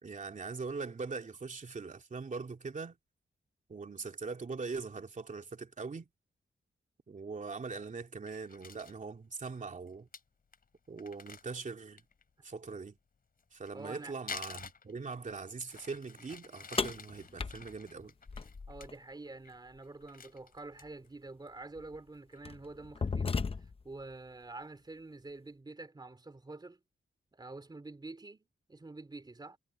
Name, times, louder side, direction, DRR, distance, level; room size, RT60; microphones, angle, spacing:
voice 1, 0.0-3.0 3.7-6.1 7.1-10.1 10.9-12.0 12.4-13.0 13.5-18.1, right 4 dB, 35° right, 2.8 m, -41 dB
Crumpling crinkling, 8.2-9.0 9.5-9.6 9.9-10.0 10.1-10.2 10.5-10.6 11.0-12.2 13.4-15.3 15.7-18.9 19.3-19.5 19.8-21.1 21.5-21.6 22.0-22.4, left 5 dB, 45° left, 3.4 m, -49 dB
voice 2, 13.7-14.1 18.7-26.8 27.3-29.6, right 2 dB, 20° right, 3.1 m, -47 dB
sound 1, 16.8-18.9 20.8-20.9 21.8-22.0 22.5-23.9, left 4 dB, 25° left, 0.7 m, -35 dB
wide cardioid pair, 155°, 21 cm